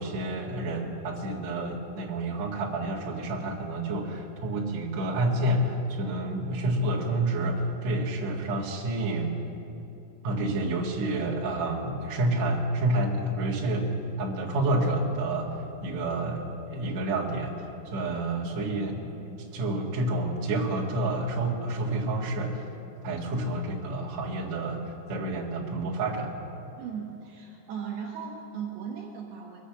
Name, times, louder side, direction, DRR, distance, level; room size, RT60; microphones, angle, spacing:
voice 1, 0.0-9.4 10.2-13.9 14.2-22.7 23.0-26.3, right 1 dB, 50° right, -4 dB, 2.5 m, -29 dB
voice 2, 26.8-29.6, right 7 dB, 70° right, -2 dB, 2.8 m, -37 dB
23.5 x 8.2 x 7.3 m, 2.8 s
omnidirectional pair, 5.2 m